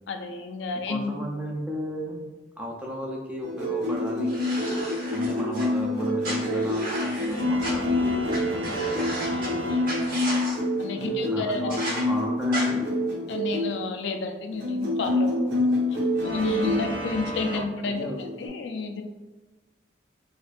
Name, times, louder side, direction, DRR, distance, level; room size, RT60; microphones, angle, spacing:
voice 1, 0.1-1.1 9.3-10.3 10.8-11.8 13.3-15.8 16.2-18.1 18.4-19.0, left 3 dB, 80° left, 6 dB, 0.4 m, -31 dB
voice 2, 0.7-2.2 2.6-4.3 5.1-9.1 11.0-12.9 15.5-15.6 17.5-18.2, equal, 10° right, -1 dB, 0.5 m, -35 dB
sound 1, 3.4-13.7 14.5-16.8 18.0-18.5, left 1 dB, 85° right, 1.3 m, -27 dB
sound 2, 4.3-5.7 6.2-7.7 8.3-8.4 8.6-9.5 9.8-10.6 11.7-12.0 12.5-12.6, right 1 dB, 50° right, 1.1 m, -34 dB
sound 3, 7.3-10.6 16.1-17.6, right 1 dB, 70° right, 0.7 m, -35 dB
4.2 x 2.4 x 2.5 m, 1.2 s
head